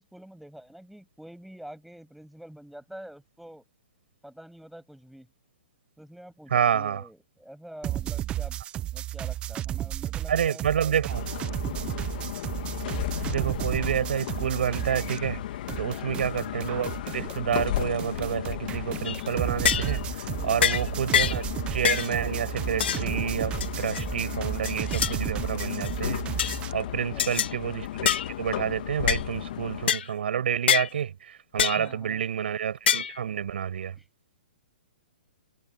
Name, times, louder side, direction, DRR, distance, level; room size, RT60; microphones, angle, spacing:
voice 1, 0.0-3.6 4.2-5.3 6.0-8.6 8.9-11.0 11.6-12.0 15.8-16.2 20.2-20.7 27.1-27.4 31.8-32.2 34.0-34.1, right 1 dB, ahead, 7.2 m, -47 dB
voice 2, 6.5-7.0 10.3-11.2 13.2-15.4 15.8-20.0 20.4-21.5 21.7-26.2 26.7-34.0, right 8 dB, 70° right, 6.3 m, -29 dB
sound 1, 7.8-15.4 15.7-26.7, right 13 dB, 15° right, 0.8 m, -33 dB
sound 2, 11.1-29.9, left 12 dB, 50° left, 2.2 m, -35 dB
compressed air can, 19.0-19.2 19.6-20.0 20.6-20.8 21.1-21.4 21.8-22.1 22.8-23.0 23.6-24.0 24.6-25.2 25.6-25.9 26.4-26.6 27.2-27.5 28.0-28.3 29.1-29.2 29.9-30.1 30.7-30.9 31.6-31.8 32.9-33.2, left 9 dB, 70° left, 3.2 m, -25 dB
hypercardioid pair, 155°, 6 cm